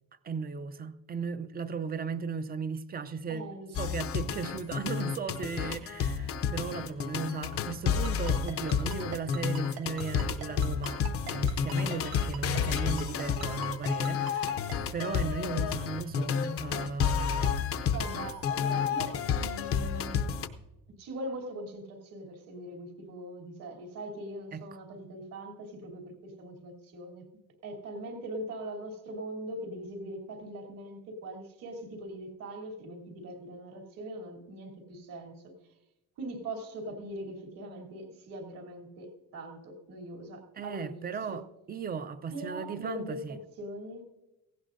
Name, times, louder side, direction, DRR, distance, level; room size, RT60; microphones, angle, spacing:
voice 1, 0.2-3.5 3.8-11.0 11.3-14.6 14.9-17.7 24.5-24.7 40.6-43.4, right 5 dB, 25° right, 0.5 m, -36 dB
voice 2, 3.3-4.0 17.9-20.4 21.0-27.3 27.6-35.5 36.2-41.4 42.3-44.0, right 1 dB, 70° right, 3.1 m, -41 dB
sound 1, 3.7-20.5, left 7 dB, 40° left, 0.6 m, -30 dB
Ringtone, 8.0-14.7, right 9 dB, 85° right, 2.3 m, -42 dB
17.5 x 16.0 x 2.6 m
cardioid pair, 180°, 35 cm